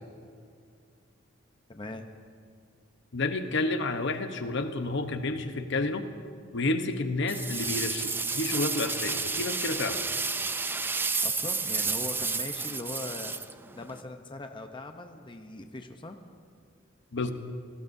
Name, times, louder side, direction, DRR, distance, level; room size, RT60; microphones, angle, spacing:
voice 1, 1.7-2.1 11.2-16.2, left 2 dB, 25° left, 5 dB, 0.8 m, -40 dB
voice 2, 3.1-6.1 6.5-10.0 17.1-17.3, left 2 dB, 65° left, 7 dB, 1.0 m, -30 dB
sound 1, 7.3-14.0, right 4 dB, 10° right, 0.4 m, -31 dB
28.0 x 19.0 x 2.7 m, 2.3 s
head